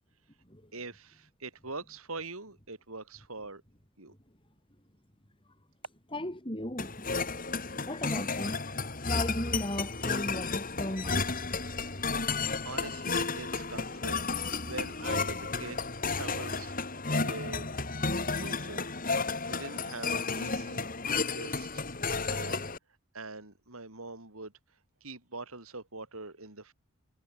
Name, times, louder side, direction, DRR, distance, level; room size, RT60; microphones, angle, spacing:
voice 1, 0.7-3.6 4.0-4.1 12.6-14.2 14.6-15.8 16.0-16.7 17.2-17.7 18.4-18.9 19.5-20.9 21.3-21.8 22.1-22.7 23.1-24.5 25.0-26.7, right 3 dB, 70° right, 4.4 m, -43 dB
voice 2, 6.1-7.2 7.8-8.6 9.0-11.4, left 1 dB, 25° left, 6.6 m, -36 dB
sound 1, 6.8-22.8, left 4 dB, 40° left, 3.9 m, -32 dB
head